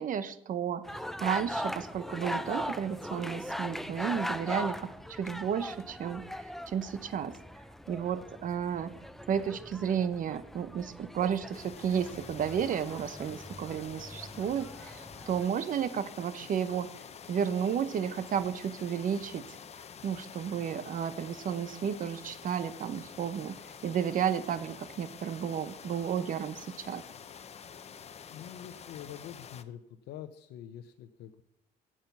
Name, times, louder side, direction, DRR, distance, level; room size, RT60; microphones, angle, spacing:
voice 1, 0.0-7.4 7.9-8.9 9.3-16.9 17.3-19.6 20.0-23.6 23.8-27.0, right 8 dB, 50° right, 13 dB, 1.0 m, -32 dB
sound 1, 0.8-15.5, equal, ahead, 0.5 m, -40 dB
sound 2, 11.5-29.6, left 7 dB, 40° left, 0.8 m, -48 dB
voice 2, 28.3-29.8 30.1-31.4, left 10 dB, 75° left, 7 dB, 0.8 m, -45 dB
9.0 x 7.6 x 6.9 m, 0.86 s
cardioid pair, 110°, 17 cm